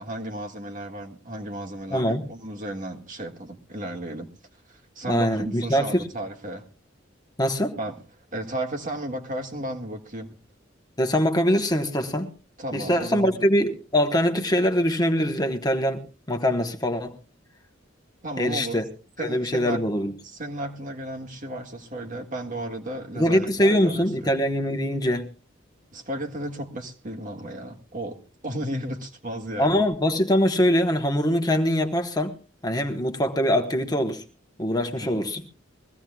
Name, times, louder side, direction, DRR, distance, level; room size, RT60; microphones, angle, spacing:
voice 1, 0.0-4.3 4.7-6.6 7.8-7.9 8.3-10.4 12.6-13.4 18.2-18.8 19.2-19.9 20.2-24.3 25.9-29.9 35.0-35.3, right 1 dB, 45° right, 1.9 m, -34 dB
voice 2, 1.9-2.2 5.1-6.0 7.4-7.8 11.0-12.3 12.7-17.2 18.4-18.8 19.2-20.1 23.1-25.3 29.6-32.3 32.6-34.2 34.6-35.4, equal, 20° left, 1.2 m, -23 dB
22.5 x 15.5 x 2.3 m
head